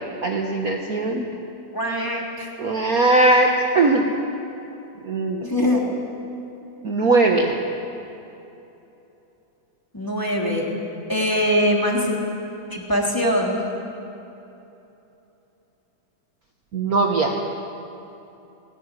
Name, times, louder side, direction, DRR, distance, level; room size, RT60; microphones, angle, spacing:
voice 1, 0.2-1.3 2.6-4.1 5.0-5.5 6.8-7.6 16.7-17.3, right 2 dB, 55° right, 1 dB, 1.0 m, -19 dB
voice 2, 1.7-2.5 5.4-5.8 9.9-10.7 11.1-12.1 12.7-13.6, equal, 5° left, -2 dB, 3.0 m, -22 dB
19.0 x 17.5 x 9.9 m, 3.0 s
omnidirectional pair, 3.5 m